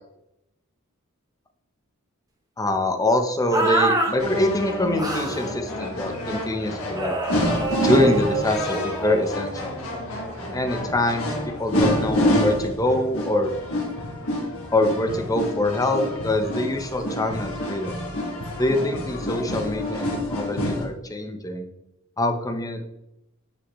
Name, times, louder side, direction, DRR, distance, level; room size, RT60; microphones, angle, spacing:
voice 1, 2.6-7.1 7.8-9.8 10.5-11.3 11.6-13.5 14.7-17.9 18.6-21.7 22.2-22.8, left 1 dB, 15° left, 5 dB, 0.9 m, -24 dB
sound 1, 3.5-4.1 5.0-5.5 7.0-9.3, right 2 dB, 15° right, 1.5 m, -26 dB
sound 2, 4.2-20.8, left 1 dB, 80° left, 2.4 m, -28 dB
9.8 x 5.6 x 3.2 m, 0.86 s
head